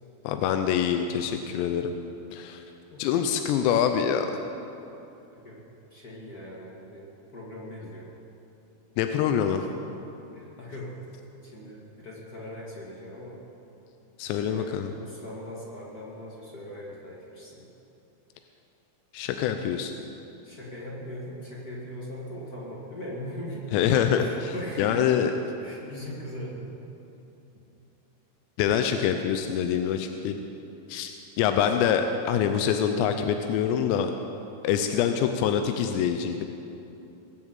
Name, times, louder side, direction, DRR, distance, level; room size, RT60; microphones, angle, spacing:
voice 1, 0.2-1.9 2.3-2.6 3.0-4.3 9.0-9.7 14.2-14.9 19.1-19.9 23.7-24.2 24.8-25.3 28.6-30.4 30.9-34.1 34.6-36.5, left 8 dB, 90° left, 6 dB, 2.9 m, -25 dB
voice 2, 5.9-8.1 9.6-9.7 10.3-10.9 11.4-13.4 14.5-17.7 20.4-23.8 24.1-25.1 25.6-26.7 34.9-35.2, equal, 40° left, -4 dB, 1.4 m, -40 dB
20.0 x 7.3 x 8.1 m, 2.9 s
omnidirectional pair, 4.9 m